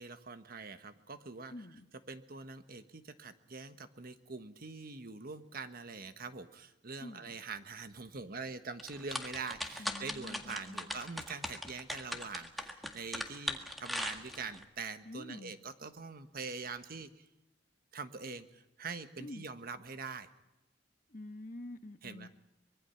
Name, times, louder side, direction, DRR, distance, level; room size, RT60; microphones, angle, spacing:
voice 1, 0.0-1.5 2.1-17.3 17.9-20.3 22.0-22.3, right 4 dB, 55° right, 10 dB, 1.3 m, -44 dB
voice 2, 1.5-1.9 7.0-7.3 9.8-11.0 15.0-15.5 19.2-19.5 21.1-22.3, left 1 dB, 45° left, 9 dB, 1.3 m, -47 dB
sound 1, 8.8-14.6, left 1 dB, ahead, 1.8 m, -39 dB
24.5 x 22.0 x 5.8 m, 0.95 s
head